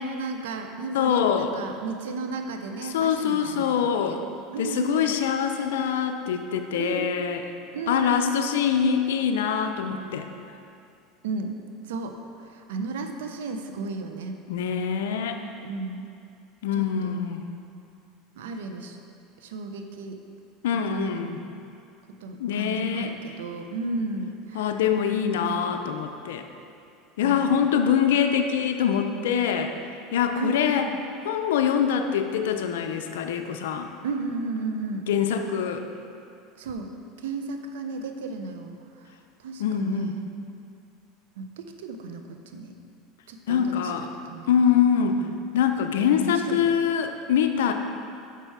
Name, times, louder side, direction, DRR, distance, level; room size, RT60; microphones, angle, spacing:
voice 1, 0.0-4.2 4.5-5.1 6.8-7.1 7.7-8.3 11.2-11.6 11.9-12.2 12.5-14.4 15.6-16.0 16.8-17.2 18.4-19.0 19.4-20.2 20.9-21.1 22.1-23.1 23.4-24.7 25.1-25.4 27.2-27.5 30.4-31.0 34.0-35.1 36.6-36.9 37.2-38.7 39.4-40.3 41.4-42.2 42.5-42.7 43.3-44.6 45.2-45.3 46.0-46.7, right 3 dB, 85° right, 5 dB, 0.6 m, -34 dB
voice 2, 0.9-1.5 2.9-4.2 4.6-7.4 7.9-10.3 14.5-15.4 16.6-17.5 20.6-21.4 22.4-23.4 24.5-26.5 27.2-29.7 30.1-30.9 31.2-33.9 35.1-35.8 39.6-40.2 43.5-44.1 44.5-45.2 45.5-47.7, left 8 dB, 85° left, 5 dB, 0.4 m, -24 dB
5.9 x 5.6 x 4.6 m, 2.5 s
supercardioid pair, 110°, 0 cm